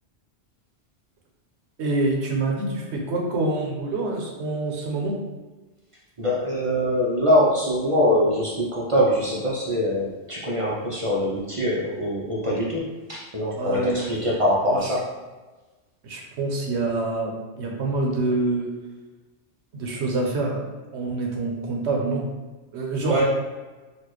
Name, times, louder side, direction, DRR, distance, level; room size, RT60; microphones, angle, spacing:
voice 1, 1.8-5.1 13.5-14.1 14.7-14.8 16.0-18.7 19.7-20.7 20.9-22.2 22.7-23.2, right 2 dB, 75° right, 0 dB, 1.0 m, -26 dB
voice 2, 6.2-15.1 23.0-23.2, equal, 40° right, -5 dB, 0.5 m, -23 dB
4.2 x 2.4 x 3.0 m, 1.2 s
omnidirectional pair, 1.2 m